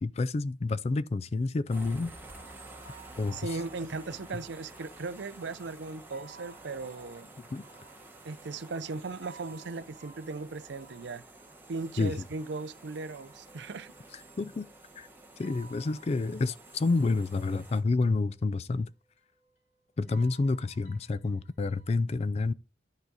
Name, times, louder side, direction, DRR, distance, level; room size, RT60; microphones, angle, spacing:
voice 1, 0.0-2.1 3.2-3.4 7.5-7.6 12.0-12.2 14.4-14.7 15.0-15.1 15.4-18.9 20.0-22.5, left 3 dB, 35° left, 0.3 m, -29 dB
sound 1, 1.7-17.8, right 2 dB, 10° right, 1.0 m, -51 dB
sound 2, 2.3-21.9, right 4 dB, 80° left, 2.8 m, -59 dB
voice 2, 3.3-7.3 8.2-11.2 11.7-13.9, right 3 dB, 65° right, 0.5 m, -38 dB
10.5 x 4.8 x 4.0 m
head